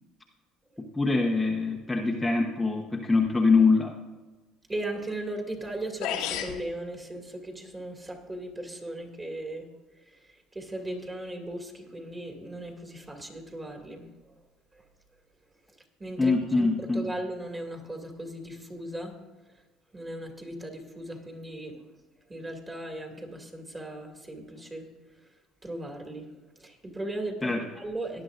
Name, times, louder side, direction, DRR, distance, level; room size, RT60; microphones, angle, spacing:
voice 1, 1.0-3.9 16.2-17.1 27.4-27.7, left 3 dB, 10° left, -1 dB, 1.0 m, -24 dB
voice 2, 4.7-9.6 10.5-14.0 16.0-19.1 19.9-21.8 22.3-24.9 25.6-26.3 26.6-28.2, right 1 dB, 15° right, 2 dB, 2.4 m, -37 dB
sound 1, 5.6-5.7 6.0-6.6, left 9 dB, 85° left, 1.5 m, -31 dB
18.0 x 10.5 x 2.6 m, 1.2 s
cardioid pair, 110°, 0 cm